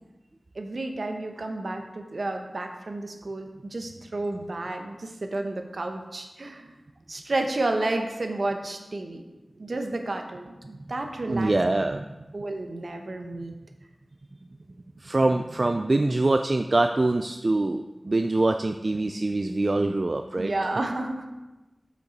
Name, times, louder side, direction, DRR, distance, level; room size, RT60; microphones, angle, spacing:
voice 1, 0.5-6.7 7.1-9.2 9.6-11.5 12.3-13.5 20.4-21.3, right 2 dB, 65° right, 4 dB, 0.9 m, -31 dB
voice 2, 11.3-12.0 15.0-20.5, right 2 dB, 45° right, 6 dB, 0.3 m, -24 dB
6.7 x 5.3 x 5.1 m, 1.1 s
wide cardioid pair, 65°, 0 cm